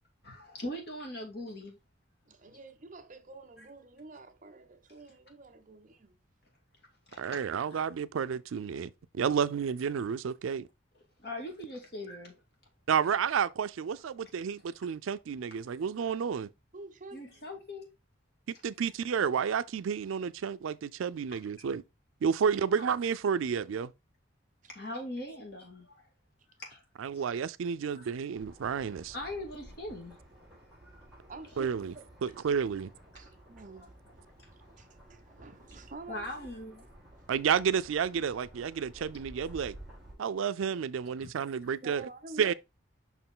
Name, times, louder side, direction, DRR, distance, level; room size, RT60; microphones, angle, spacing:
voice 1, 0.2-1.8 7.1-7.4 7.7-7.8 11.2-12.4 17.1-17.9 22.7-22.9 24.7-26.1 26.6-26.8 27.9-28.1 29.1-30.2 30.8-31.0 36.1-36.8 41.2-41.3, left 1 dB, 55° left, 2.2 m, -41 dB
voice 2, 2.3-6.2 9.3-9.5 16.7-17.5 24.6-24.7 25.3-25.4 31.3-32.1 33.1-33.9 34.5-36.5 41.8-42.5, right 3 dB, 40° right, 0.7 m, -49 dB
voice 3, 7.2-10.7 12.9-16.5 18.6-21.8 22.2-23.9 27.0-29.1 31.6-31.9 32.2-32.9 37.3-39.7 40.2-42.1 42.4-42.5, right 7 dB, 80° right, 0.4 m, -31 dB
sound 1, 28.3-40.1, right 1 dB, ahead, 2.3 m, -53 dB
5.7 x 4.6 x 3.7 m
head